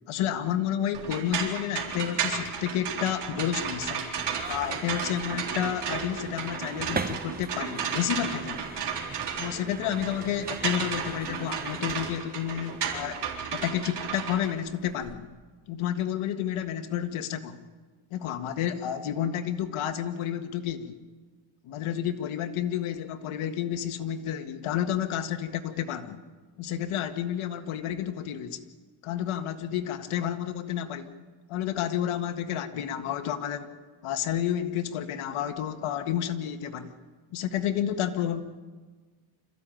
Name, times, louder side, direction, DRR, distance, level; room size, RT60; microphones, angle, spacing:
voice 1, 0.1-4.1 4.5-8.8 9.4-13.2 13.5-15.3 15.7-17.6 18.1-21.0 21.6-26.2 26.6-28.6 29.0-31.1 31.5-33.7 34.0-36.9 37.3-38.4, left 10 dB, 80° left, 8 dB, 1.7 m, -30 dB
sound 1, 0.9-15.1, right 7 dB, 55° right, 4.0 m, -33 dB
sound 2, 4.2-12.2, right 4 dB, 20° right, 0.9 m, -40 dB
26.5 x 15.0 x 9.1 m, 1.4 s
cardioid pair, 130°, 49 cm